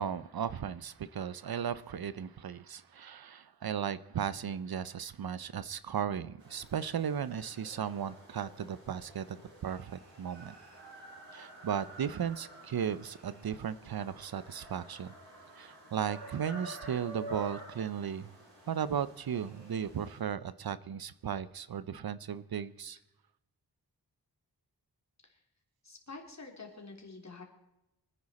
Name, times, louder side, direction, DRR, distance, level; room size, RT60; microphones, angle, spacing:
voice 1, 0.0-9.4 9.6-10.5 11.3-15.1 15.6-18.3 18.7-23.0, right 8 dB, 60° right, 0.6 m, -36 dB
sound 1, 6.4-20.2, right 1 dB, 85° right, 6.0 m, -50 dB
voice 2, 25.8-27.4, left 3 dB, 40° left, 3.0 m, -48 dB
25.0 x 9.8 x 4.2 m
wide cardioid pair, 120°, 41 cm